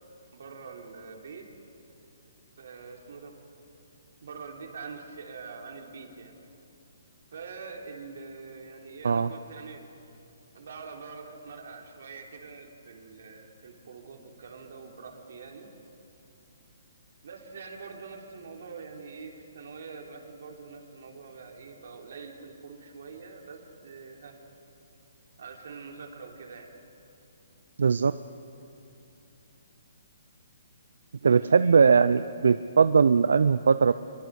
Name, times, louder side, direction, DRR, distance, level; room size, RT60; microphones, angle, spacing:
voice 1, 0.3-1.5 2.6-3.3 4.2-6.4 7.3-9.8 10.5-15.7 17.2-24.4 25.4-26.7 31.2-31.9, right 5 dB, 55° right, 2 dB, 3.5 m, -44 dB
voice 2, 27.8-28.1 31.2-33.9, right 5 dB, 80° right, 13 dB, 0.6 m, -20 dB
26.5 x 23.0 x 6.6 m, 2.9 s
hypercardioid pair, 175°, 0 cm